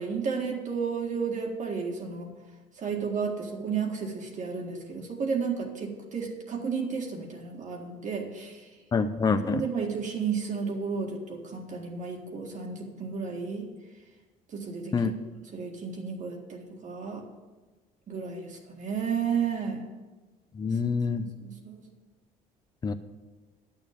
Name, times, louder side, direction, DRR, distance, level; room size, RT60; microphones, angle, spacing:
voice 1, 0.0-2.3 2.8-8.6 9.4-13.7 14.5-15.0 15.5-17.2 18.1-19.9 21.1-21.8, right 5 dB, 45° right, 0 dB, 1.8 m, -32 dB
voice 2, 8.9-9.6 14.9-15.1 20.5-21.2 22.8-22.9, left 5 dB, 25° left, 10 dB, 0.6 m, -26 dB
10.5 x 6.9 x 6.6 m, 1.2 s
cardioid pair, 110°, 17 cm